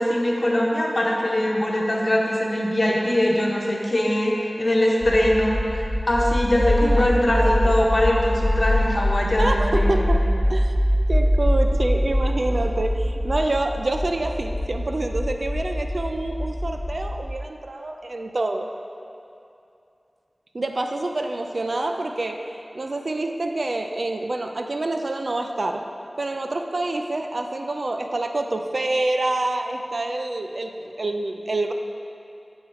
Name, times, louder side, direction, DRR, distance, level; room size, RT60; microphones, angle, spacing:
voice 1, 0.0-10.0, left 1 dB, 45° left, -2 dB, 1.2 m, -22 dB
sound 1, 5.0-17.2, equal, 20° left, 0.9 m, -23 dB
voice 2, 6.8-7.7 9.4-10.2 10.5-10.8 11.1-18.7 20.5-25.9 26.2-31.7, right 2 dB, 65° right, 4 dB, 0.4 m, -27 dB
7.2 x 5.9 x 4.9 m, 2.6 s
wide cardioid pair, 65°, 0 cm